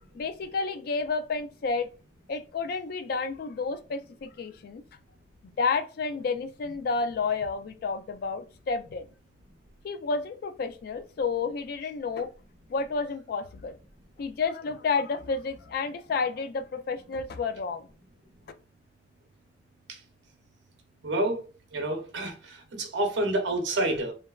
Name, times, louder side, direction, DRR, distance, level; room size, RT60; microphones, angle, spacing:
voice 1, 0.0-1.9 2.3-4.8 5.4-9.1 9.8-12.3 12.7-13.8 14.2-17.9, left 4 dB, 55° left, 0.3 m, -30 dB
voice 2, 21.0-21.4 21.7-24.1, right 1 dB, 85° right, 0.8 m, -28 dB
3.2 x 2.1 x 2.3 m
head